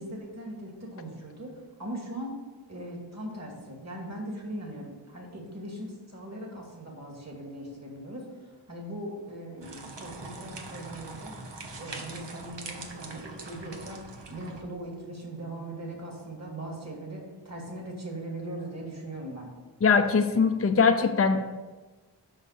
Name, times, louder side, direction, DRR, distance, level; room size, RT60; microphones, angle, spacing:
voice 1, 0.0-1.5 1.8-2.3 2.7-11.4 11.8-19.5, right 1 dB, 35° right, -1 dB, 2.6 m, -40 dB
sound 1, 9.6-14.6, right 3 dB, 70° right, 1.3 m, -42 dB
voice 2, 19.8-21.4, left 5 dB, 30° left, 7 dB, 0.6 m, -21 dB
6.4 x 5.5 x 6.9 m, 1.3 s
wide cardioid pair, 55°, 44 cm